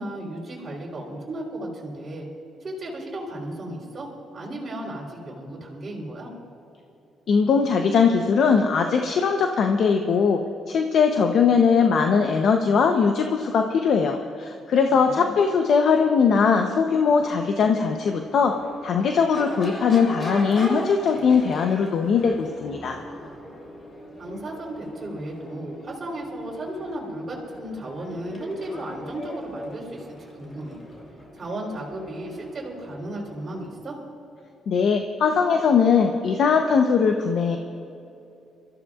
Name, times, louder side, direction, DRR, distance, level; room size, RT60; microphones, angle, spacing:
voice 1, 0.0-2.3 2.6-6.3 15.0-15.3 24.2-30.8 31.3-34.0, right 1 dB, 35° right, -5 dB, 3.6 m, -35 dB
voice 2, 7.3-10.4 10.7-18.6 18.8-23.0 34.7-37.6, left 5 dB, 65° left, 4 dB, 0.8 m, -20 dB
Crowd / Race car auto racing / Accelerating revving vroom, 16.7-33.8, equal, 40° left, 3.1 m, -39 dB
25.0 x 14.0 x 2.5 m, 2.8 s
cardioid pair, 90°, 0 cm